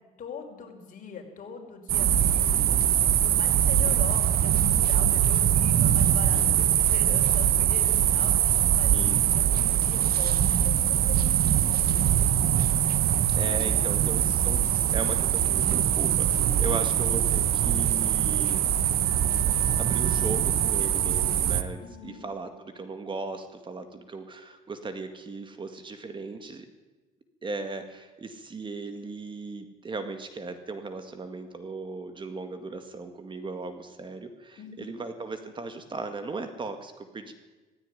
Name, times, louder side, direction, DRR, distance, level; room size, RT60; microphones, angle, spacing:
voice 1, 0.2-2.8 3.2-12.4 13.0-13.9 16.7-17.1 21.8-22.2 34.6-35.0, left 5 dB, 50° left, 3 dB, 5.0 m, -42 dB
sound 1, 1.9-21.6, right 10 dB, 65° right, 1.3 m, -23 dB
voice 2, 6.3-6.7 8.9-9.2 13.3-18.8 19.8-26.7 27.4-37.3, right 3 dB, 30° right, 8 dB, 2.0 m, -37 dB
sound 2, 18.3-23.7, left 5 dB, 25° left, 4.7 m, -49 dB
16.5 x 16.0 x 10.0 m, 1.2 s
cardioid pair, 110°, 17 cm